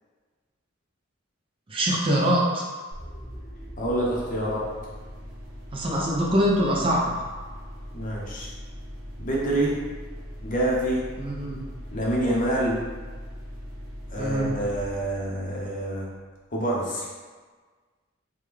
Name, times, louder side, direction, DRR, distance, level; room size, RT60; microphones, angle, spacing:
voice 1, 1.7-2.7 5.7-7.1 11.2-11.6 14.2-14.5, equal, 25° right, -3 dB, 0.4 m, -23 dB
sound 1, 2.9-16.4, equal, 45° right, 1.2 m, -40 dB
voice 2, 3.8-4.7 7.9-8.5 9.2-9.8 10.4-11.1 11.9-12.9 14.1-16.1 16.5-17.1, right 1 dB, 45° left, -4 dB, 0.7 m, -27 dB
3.5 x 2.2 x 3.2 m, 1.4 s
head